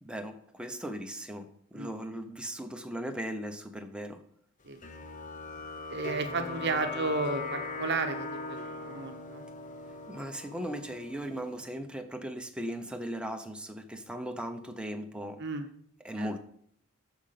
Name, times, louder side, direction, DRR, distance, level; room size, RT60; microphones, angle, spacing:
voice 1, 0.0-4.2 10.1-15.4 16.0-16.4, equal, 5° right, 0.8 m, -38 dB
sound 1, 4.8-11.7, left 3 dB, 35° left, 1.0 m, -40 dB
voice 2, 5.9-8.6 8.8-9.4 15.4-15.7 16.2-16.3, right 3 dB, 50° right, 0.9 m, -33 dB
13.0 x 5.2 x 5.8 m
head